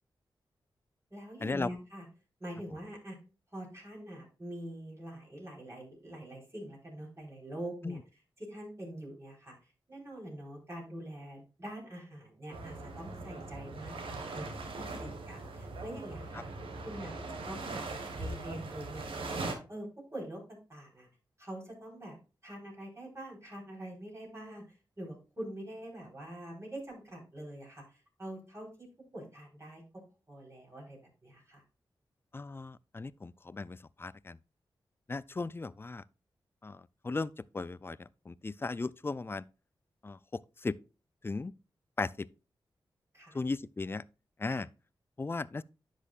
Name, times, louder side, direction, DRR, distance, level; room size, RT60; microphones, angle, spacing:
voice 1, 1.1-2.0 2.4-3.2 3.5-8.0 8.4-9.5 9.9-14.5 15.0-16.4 16.8-20.4 20.7-21.1 21.4-22.2 22.4-24.6 25.0-28.9 29.1-30.0 30.3-31.6 43.1-43.4 44.5-44.6, right 1 dB, 30° right, 4.2 m, -44 dB
sound 1, 12.5-19.5, right 3 dB, 85° right, 1.5 m, -40 dB
voice 2, 32.3-34.4 35.1-36.0 36.6-39.4 40.0-40.8 41.2-41.5 42.0-42.3 43.3-44.0 44.4-44.7 45.2-45.6, left 3 dB, 25° left, 0.4 m, -37 dB
10.0 x 6.4 x 2.4 m
cardioid pair, 55°, 9 cm